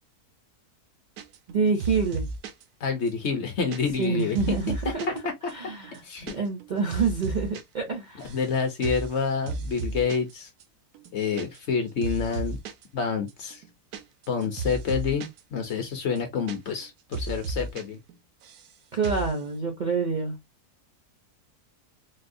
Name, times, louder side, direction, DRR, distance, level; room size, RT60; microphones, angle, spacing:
sound 1, 1.2-1.5 1.8-2.6 3.1-5.2 5.5-5.6 5.8-6.3 6.6-7.6 7.9-8.5 8.8-9.1 9.5-10.3 10.6-10.7 10.9-11.8 12.0-12.8 13.3-15.4 15.7-15.8 16.0-16.9 17.1-17.8 18.1-18.7 19.0-19.4, right 3 dB, 85° right, 1.2 m, -34 dB
voice 1, 1.5-2.3 4.0-5.1 5.5-5.9 6.3-8.3 18.9-20.4, right 5 dB, 55° right, 0.5 m, -27 dB
voice 2, 2.8-4.6 5.1-5.2 5.4-5.5 6.0-6.4 8.2-10.5 11.1-12.6 12.9-13.6 14.3-18.0, left 5 dB, 60° left, 0.8 m, -28 dB
4.0 x 2.1 x 2.6 m
omnidirectional pair, 1.6 m